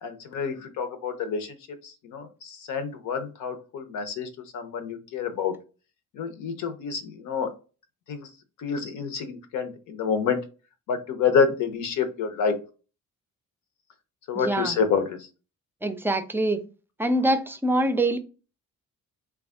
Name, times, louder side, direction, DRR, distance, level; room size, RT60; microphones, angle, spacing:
voice 1, 0.0-1.6 1.8-5.5 6.1-7.5 8.1-8.3 8.6-10.4 10.9-12.5 14.3-15.2, left 6 dB, 80° left, 0.7 m, -28 dB
voice 2, 14.3-14.8 15.8-16.6 17.0-18.2, right 1 dB, 5° right, 0.4 m, -24 dB
3.3 x 2.3 x 3.5 m
cardioid pair, 90°, 30 cm